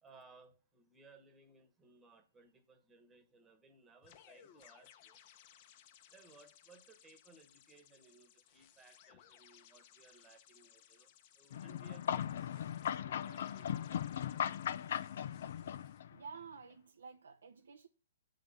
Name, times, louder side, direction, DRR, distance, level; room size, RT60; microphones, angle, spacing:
voice 1, 0.0-5.2 6.1-14.4, right 3 dB, 10° right, 1.3 m, -63 dB
sound 1, 4.0-16.0, left 10 dB, 40° left, 0.9 m, -63 dB
sound 2, 11.5-16.2, left 9 dB, 60° left, 0.5 m, -38 dB
voice 2, 16.1-17.9, right 5 dB, 85° right, 0.7 m, -51 dB
9.0 x 3.9 x 7.0 m
hypercardioid pair, 145°, 0 cm